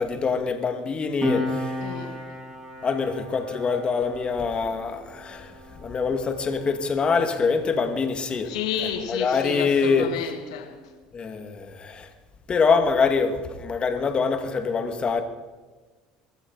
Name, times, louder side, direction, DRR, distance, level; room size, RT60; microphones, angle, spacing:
voice 1, 0.0-1.8 2.8-8.5 9.1-10.1 11.1-12.1 12.5-15.2, left 5 dB, 30° left, 2.1 m, -24 dB
Piano, 1.2-8.2 8.5-8.7, left 1 dB, 20° right, 5.7 m, -35 dB
voice 2, 1.8-2.2 8.5-10.9, left 8 dB, 80° left, 2.2 m, -31 dB
23.0 x 13.0 x 4.1 m
hypercardioid pair, 80°, 3 cm